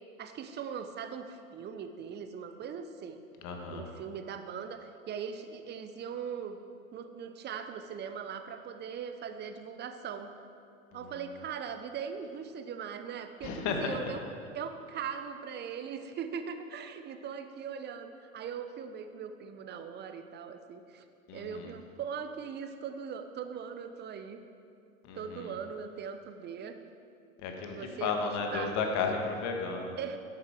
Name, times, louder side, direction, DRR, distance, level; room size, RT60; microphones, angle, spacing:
voice 1, 0.2-3.2 3.7-6.6 6.9-10.3 10.9-14.2 14.5-21.0 21.3-24.4 25.1-26.7 27.7-28.8 30.0-30.2, right 7 dB, 25° right, 8 dB, 0.7 m, -40 dB
voice 2, 3.4-3.8 10.9-11.1 13.4-14.0 21.3-21.7 25.0-25.5 27.4-30.0, left 4 dB, 40° left, 3 dB, 1.6 m, -33 dB
10.5 x 8.8 x 4.7 m, 2.4 s
figure-of-eight pair, 85°, 42 cm